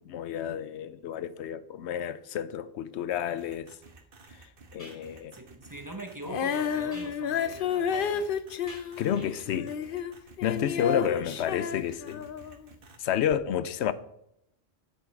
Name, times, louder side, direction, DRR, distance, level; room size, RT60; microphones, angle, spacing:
voice 1, 0.0-3.7 4.7-5.4 9.0-9.8 10.4-12.3 13.0-13.9, left 9 dB, 90° left, 0.9 m, -30 dB
sound 1, 3.4-13.0, right 3 dB, 55° right, 1.3 m, -53 dB
sound 2, 3.8-3.9 4.8-5.1 6.9-8.4 8.7-9.5, equal, 30° left, 3.6 m, -50 dB
voice 2, 5.3-8.3, right 2 dB, 20° right, 0.7 m, -42 dB
Female singing, 6.2-12.6 13.3-13.4, left 7 dB, 60° left, 0.7 m, -31 dB
7.6 x 7.2 x 5.2 m
omnidirectional pair, 1.1 m